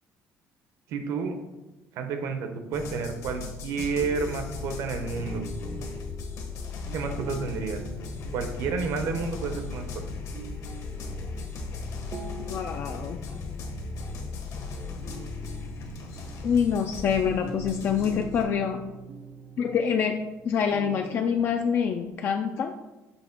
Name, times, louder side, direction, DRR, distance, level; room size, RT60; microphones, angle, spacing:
voice 1, 0.9-1.4 1.9-5.4 6.9-7.8 8.3-9.9, right 5 dB, 65° right, 6 dB, 0.9 m, -30 dB
sound 1, 2.7-18.4, left 4 dB, 60° left, 1.2 m, -37 dB
sound 2, 4.0-22.1, right 4 dB, 30° right, 0.5 m, -45 dB
voice 2, 12.4-13.2 16.4-18.8 19.6-20.2 20.4-22.7, left 7 dB, 40° left, 4 dB, 0.4 m, -26 dB
7.0 x 3.0 x 5.8 m, 1.1 s
cardioid pair, 170°, 6 cm